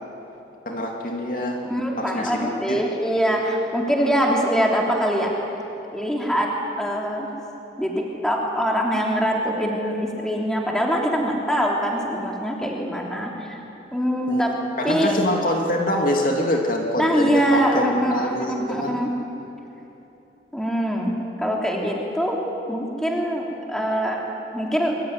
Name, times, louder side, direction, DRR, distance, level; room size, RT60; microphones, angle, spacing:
voice 1, 0.7-1.6 2.0-2.8 14.3-14.4 14.8-18.9, left 1 dB, 45° left, 1 dB, 2.7 m, -25 dB
voice 2, 1.6-5.3 5.9-6.5 6.8-7.3 7.8-7.9 8.2-13.6 13.9-14.5 14.8-15.1 17.0-19.1 20.5-21.1 21.4-22.4 22.7-24.2 24.5-24.9, equal, 5° left, -1 dB, 3.3 m, -23 dB
25.0 x 23.5 x 9.7 m, 2.9 s
head